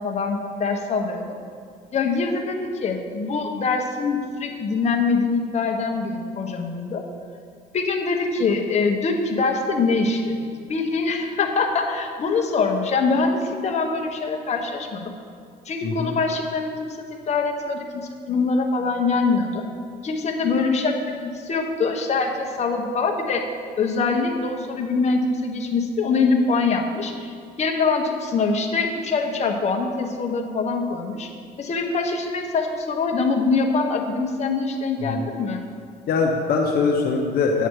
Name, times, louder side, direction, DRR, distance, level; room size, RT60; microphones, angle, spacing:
voice 1, 0.0-1.4 1.9-7.0 7.7-10.4 10.7-15.1 15.6-16.7 17.3-19.6 20.0-23.4 23.8-31.3 31.6-35.6, left 4 dB, 40° left, 2 dB, 1.3 m, -24 dB
voice 2, 15.8-16.1 35.1-35.2 36.1-37.7, left 4 dB, 65° left, 1 dB, 0.9 m, -22 dB
10.0 x 8.1 x 4.7 m, 2.3 s
cardioid pair, 110°, 17 cm